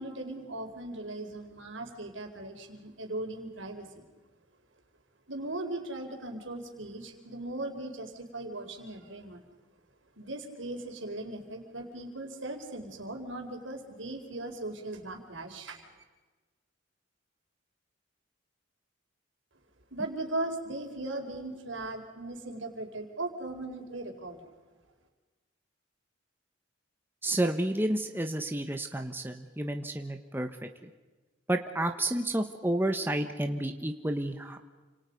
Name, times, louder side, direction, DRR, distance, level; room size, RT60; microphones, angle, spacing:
voice 1, 0.0-4.0 5.3-9.5 10.2-15.8 19.9-24.5, right 2 dB, 75° right, 4 dB, 4.4 m, -38 dB
voice 2, 27.2-30.5 30.8-30.9 31.5-34.6, right 1 dB, 10° right, 5 dB, 1.2 m, -30 dB
29.5 x 27.5 x 5.3 m, 1.3 s
head